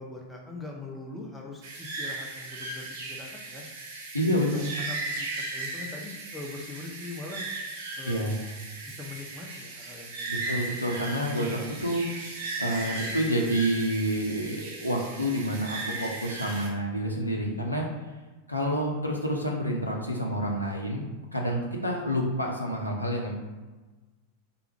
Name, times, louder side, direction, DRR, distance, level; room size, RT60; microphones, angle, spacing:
voice 1, 0.0-3.7 4.2-4.6 4.9-7.4 8.0-8.3 8.9-10.6, left 3 dB, 10° left, -1 dB, 0.5 m, -42 dB
sound 1, 1.6-16.7, right 2 dB, 50° right, 0.6 m, -37 dB
voice 2, 4.1-4.6 8.1-8.4 10.3-12.2 12.6-17.9 18.5-21.0 21.3-23.3, equal, 85° left, -1 dB, 0.4 m, -28 dB
3.3 x 2.2 x 3.2 m, 1.2 s
figure-of-eight pair, 90°, 0 cm